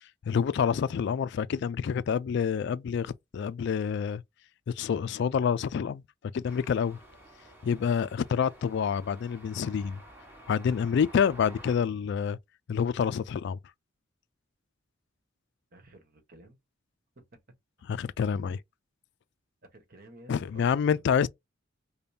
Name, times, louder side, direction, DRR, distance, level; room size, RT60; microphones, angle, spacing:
voice 1, 0.3-4.2 4.8-6.0 6.3-7.0 7.6-10.0 10.5-12.4 12.7-13.6 17.9-18.6 20.3-21.3, left 7 dB, 60° left, 0.3 m, -27 dB
sound 1, 6.4-11.8, right 1 dB, 10° right, 1.5 m, -51 dB
voice 2, 15.7-16.6 17.1-17.4 19.7-20.7, right 1 dB, 50° right, 1.2 m, -53 dB
5.1 x 2.2 x 2.7 m
head